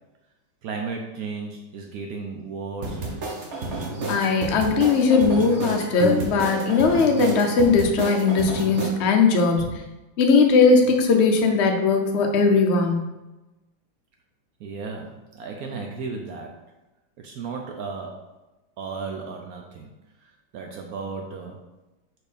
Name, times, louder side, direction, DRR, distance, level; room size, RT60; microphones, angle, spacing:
voice 1, 0.6-3.0 14.6-16.6 17.2-18.2 18.8-19.9 20.2-21.6, right 4 dB, 90° right, 2 dB, 0.8 m, -34 dB
sound 1, 2.8-8.9, right 2 dB, 45° right, 0.9 m, -30 dB
voice 2, 4.1-9.7 10.2-13.1, left 4 dB, 80° left, 3 dB, 0.6 m, -19 dB
4.4 x 4.4 x 5.0 m, 1.0 s
omnidirectional pair, 2.3 m